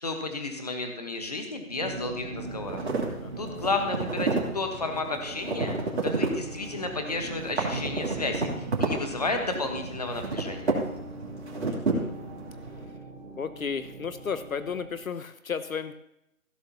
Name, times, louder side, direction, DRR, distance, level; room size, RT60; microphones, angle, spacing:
voice 1, 0.0-2.8 3.4-5.8 6.0-10.8, left 3 dB, 25° left, 5 dB, 1.2 m, -32 dB
sound 1, 1.7-15.0, right 3 dB, 30° right, 1.6 m, -41 dB
sound 2, 2.4-12.8, right 3 dB, 50° right, 3.0 m, -32 dB
voice 2, 3.2-3.7 11.6-12.1 13.4-15.9, left 6 dB, 70° left, 12 dB, 0.8 m, -34 dB
15.5 x 13.0 x 2.9 m, 0.82 s
figure-of-eight pair, 175°, 43 cm